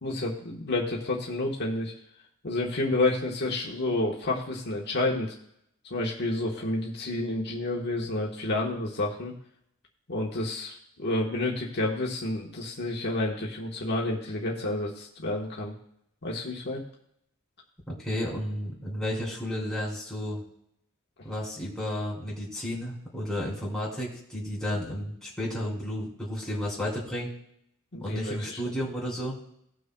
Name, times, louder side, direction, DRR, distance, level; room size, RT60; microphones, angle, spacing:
voice 1, 0.0-1.9 2.4-5.3 5.9-9.3 10.1-15.7 16.2-16.8 27.9-28.6, left 2 dB, 50° left, -2 dB, 1.3 m, -30 dB
voice 2, 17.9-20.4 21.2-27.3 28.0-29.4, equal, ahead, -6 dB, 3.1 m, -32 dB
19.0 x 6.3 x 2.3 m, 0.75 s
head